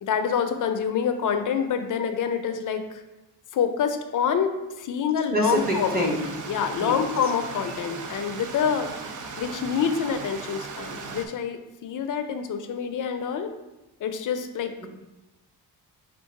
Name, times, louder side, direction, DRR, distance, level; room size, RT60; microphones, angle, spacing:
voice 1, 0.0-2.8 3.5-6.1 6.5-8.9 9.4-13.5 14.0-14.9, left 7 dB, 50° left, 7 dB, 0.5 m, -26 dB
voice 2, 5.3-6.3 6.8-7.0 14.8-14.9, equal, 25° right, 0 dB, 1.0 m, -25 dB
Stream, 5.5-11.3, right 4 dB, 50° right, 0.6 m, -37 dB
4.5 x 2.5 x 4.6 m, 1.0 s
cardioid pair, 100°, 39 cm